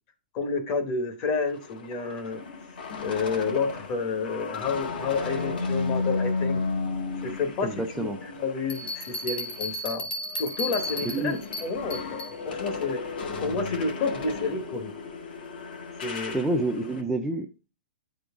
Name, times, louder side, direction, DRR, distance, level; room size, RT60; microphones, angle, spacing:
voice 1, 0.3-2.4 3.0-6.6 7.2-10.1 10.4-13.0 13.4-14.9 16.0-16.4, left 4 dB, 30° left, 0.9 m, -30 dB
sound 1, 1.4-9.8 10.2-17.0, left 4 dB, 70° left, 1.6 m, -34 dB
voice 2, 7.6-8.2 11.0-11.4 16.3-17.7, right 2 dB, 5° right, 0.3 m, -28 dB
Bell, 8.7-12.4, left 1 dB, 85° left, 2.0 m, -34 dB
10.0 x 3.8 x 3.5 m
hypercardioid pair, 170°, 5 cm